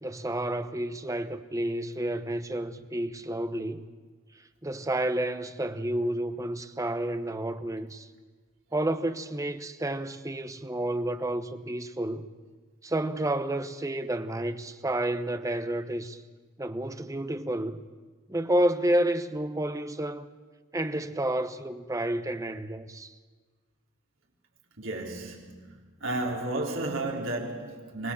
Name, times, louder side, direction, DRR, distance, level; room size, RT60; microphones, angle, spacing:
voice 1, 0.0-3.9 4.6-8.1 8.7-12.3 12.8-16.2 16.6-17.8 18.3-20.3 20.7-23.1, right 1 dB, 15° right, 0.9 m, -30 dB
voice 2, 24.8-25.7 26.0-28.1, right 2 dB, 80° right, 3.8 m, -32 dB
24.5 x 18.5 x 7.2 m
head